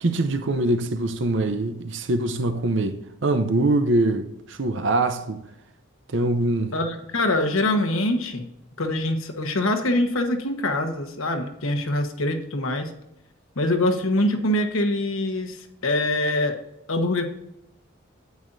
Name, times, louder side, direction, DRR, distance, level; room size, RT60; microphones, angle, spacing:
voice 1, 0.0-5.4 6.1-6.8, right 2 dB, 60° right, 0.7 m, -23 dB
voice 2, 6.7-8.5 8.8-12.9 13.6-16.6 16.9-17.3, left 1 dB, 85° left, 1.2 m, -24 dB
9.3 x 8.4 x 2.6 m
head